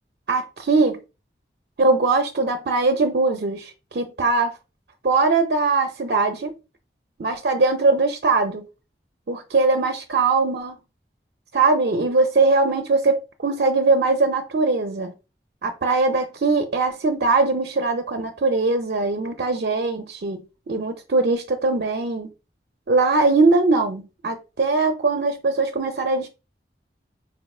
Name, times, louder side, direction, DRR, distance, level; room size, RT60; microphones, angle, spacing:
voice 1, 0.3-1.0 1.8-4.5 5.0-6.5 7.2-8.7 9.3-10.8 11.5-15.1 15.6-20.4 20.7-22.3 22.9-26.3, right 3 dB, 60° right, 0.5 m, -21 dB
3.9 x 3.2 x 2.3 m
head